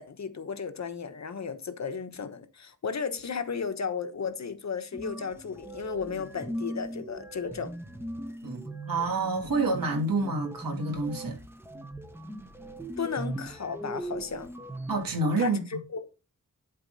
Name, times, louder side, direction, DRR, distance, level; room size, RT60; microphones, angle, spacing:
voice 1, 0.0-7.7 13.0-14.5 15.4-16.1, left 6 dB, 55° left, 1.2 m, -34 dB
sound 1, 4.9-15.2, right 1 dB, 5° right, 1.1 m, -39 dB
voice 2, 8.4-11.4 14.9-15.6, right 3 dB, 80° right, 3.1 m, -28 dB
11.5 x 4.6 x 4.2 m
wide cardioid pair, 150°, 34 cm